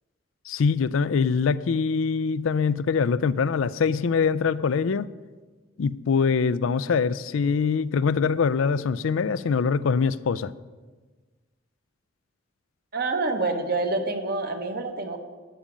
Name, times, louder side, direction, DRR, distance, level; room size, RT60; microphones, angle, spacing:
voice 1, 0.5-5.1 5.8-10.5, left 5 dB, 80° left, 16 dB, 0.4 m, -23 dB
voice 2, 12.9-15.2, right 3 dB, 50° right, 5 dB, 1.2 m, -27 dB
12.5 x 5.1 x 8.5 m, 1.3 s
head